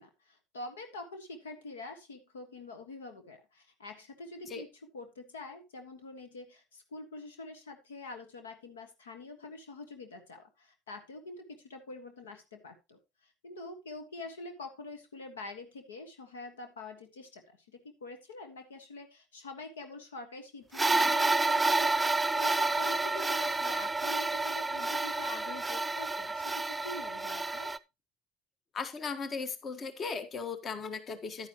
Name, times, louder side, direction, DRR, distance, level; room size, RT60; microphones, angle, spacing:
voice 1, 0.0-27.7, left 2 dB, 80° left, 7 dB, 1.5 m, -46 dB
sound 1, 20.7-27.8, right 3 dB, 15° right, 0.5 m, -29 dB
voice 2, 28.7-31.5, left 5 dB, 35° left, 10 dB, 1.4 m, -37 dB
10.5 x 9.6 x 2.9 m, 0.25 s
hypercardioid pair, 70°, 0 cm